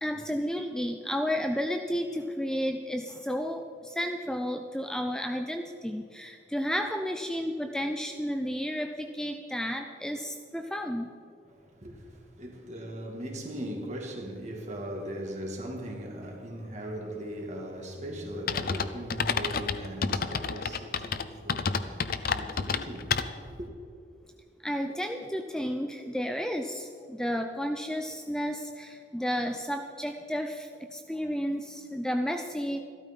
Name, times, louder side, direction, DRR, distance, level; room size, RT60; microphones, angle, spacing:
voice 1, 0.0-11.1 24.6-32.8, equal, 5° left, 0.5 m, -32 dB
voice 2, 11.4-23.7, equal, 40° right, 2.2 m, -39 dB
sound 1, 18.5-23.6, left 5 dB, 55° left, 0.6 m, -30 dB
14.0 x 12.5 x 5.4 m
head